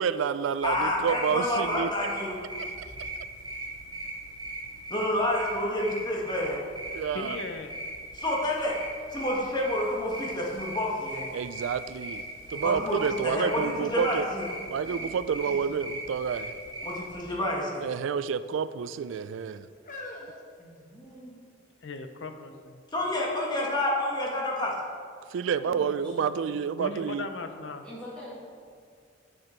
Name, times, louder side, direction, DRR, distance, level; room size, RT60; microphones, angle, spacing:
voice 1, 0.0-1.9 2.8-2.9 6.9-7.4 11.3-14.3 14.7-16.5 17.8-19.7 25.3-27.3, right 7 dB, 80° right, 14 dB, 0.3 m, -29 dB
voice 2, 0.6-2.3 4.9-6.6 8.1-8.8 9.1-11.3 12.5-14.4 16.8-17.8 22.9-24.7, left 1 dB, 20° left, -3 dB, 1.4 m, -29 dB
sound 1, 0.6-17.1, right 1 dB, 25° right, 2.2 m, -39 dB
voice 3, 7.1-7.7 21.8-22.8 26.8-27.9, left 3 dB, 75° left, 7 dB, 0.6 m, -38 dB
sound 2, 12.3-12.4 12.8-14.4 14.9-15.4 16.3-16.6 16.9-17.1 18.0-18.6 19.3-21.4 22.1-22.2, left 2 dB, 45° left, 1.0 m, -48 dB
voice 4, 14.7-15.0 15.4-15.7 17.3-17.6 20.6-21.4 25.6-26.6 27.8-28.3, equal, 5° left, -8 dB, 1.9 m, -46 dB
7.9 x 6.6 x 4.4 m, 2.1 s
head